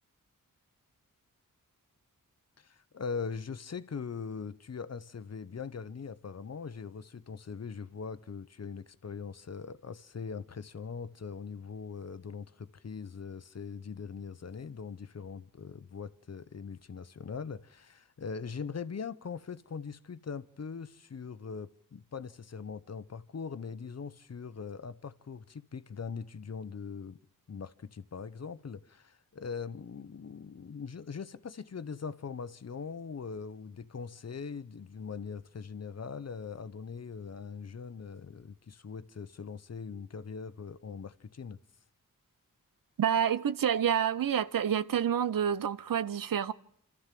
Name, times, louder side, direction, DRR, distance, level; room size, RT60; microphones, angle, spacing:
voice 1, 2.6-27.2 27.5-41.6, left 5 dB, 45° left, 0.9 m, -41 dB
voice 2, 43.0-46.5, right 8 dB, 70° right, 0.7 m, -28 dB
27.5 x 13.0 x 7.6 m
cardioid pair, 50°, 35 cm